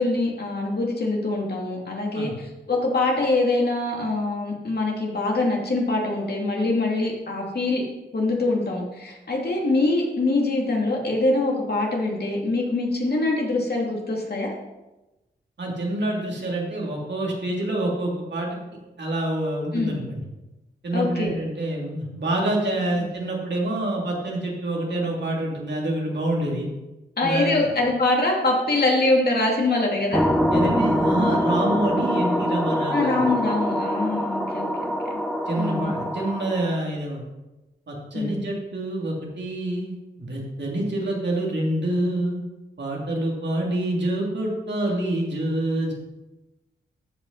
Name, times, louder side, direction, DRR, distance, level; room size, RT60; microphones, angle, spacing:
voice 1, 0.0-7.8 8.1-14.5 19.7-20.0 20.9-21.3 22.9-23.0 27.2-30.3 32.9-34.9 35.1-35.2 35.6-35.9 38.1-38.4, left 2 dB, 50° left, -1 dB, 2.7 m, -24 dB
voice 2, 15.6-18.6 19.0-20.2 20.8-26.7 27.2-27.7 30.5-33.2 35.5-37.2 37.9-42.4 42.8-45.9, right 1 dB, 60° right, -2 dB, 2.8 m, -27 dB
sound 1, 30.1-36.8, equal, ahead, 1.1 m, -24 dB
14.0 x 5.1 x 4.1 m, 1.0 s
supercardioid pair, 45°, 21 cm